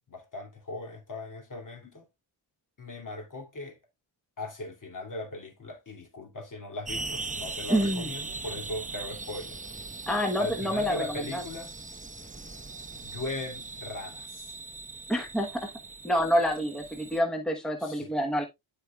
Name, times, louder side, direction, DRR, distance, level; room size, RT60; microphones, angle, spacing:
voice 1, 0.1-2.0 2.8-3.8 4.4-9.6 10.4-11.7 13.0-14.6 17.8-18.1, left 2 dB, 40° left, 2.6 m, -39 dB
sound 1, 6.8-17.2, right 3 dB, 15° right, 0.7 m, -40 dB
voice 2, 7.7-8.1 10.1-11.4 15.1-15.7 16.0-18.5, equal, ahead, 1.1 m, -27 dB
12.5 x 4.8 x 2.3 m
cardioid pair, 95°, 49 cm